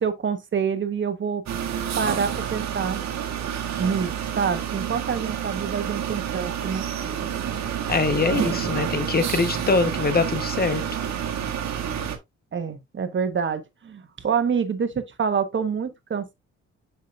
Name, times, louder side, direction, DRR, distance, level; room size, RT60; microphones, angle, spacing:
voice 1, 0.0-1.4 2.0-3.0 3.7-6.9 12.5-16.3, right 6 dB, 40° right, 1.3 m, -27 dB
sound 1, 1.5-12.2, right 9 dB, 65° right, 1.5 m, -29 dB
voice 2, 7.9-10.8, left 4 dB, 30° left, 1.2 m, -23 dB
7.3 x 5.9 x 2.5 m
cardioid pair, 90°, 30 cm